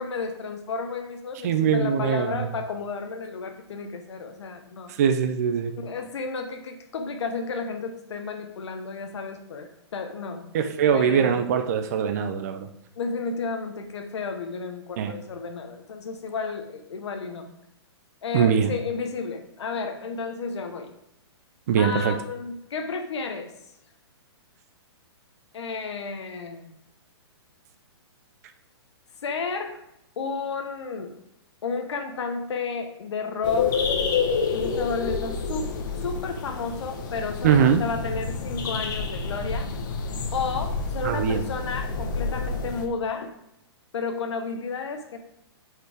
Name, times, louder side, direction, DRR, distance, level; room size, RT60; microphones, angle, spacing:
voice 1, 0.0-4.9 5.7-10.4 10.9-11.4 13.0-17.5 18.2-20.9 21.8-23.5 25.5-26.7 29.2-29.8 30.2-31.1 31.6-33.8 34.5-39.7 40.3-43.3 43.9-45.2, left 4 dB, 80° left, 5 dB, 0.9 m, -32 dB
voice 2, 1.4-2.3 5.0-5.7 10.5-12.7 15.0-15.1 18.3-18.7 21.7-22.2 37.4-37.8 41.0-41.4, right 7 dB, 35° right, 8 dB, 0.4 m, -22 dB
sound 1, 33.4-42.9, left 5 dB, 45° left, 0.9 m, -29 dB
8.3 x 4.6 x 3.4 m, 0.80 s
hypercardioid pair, 170°, 14 cm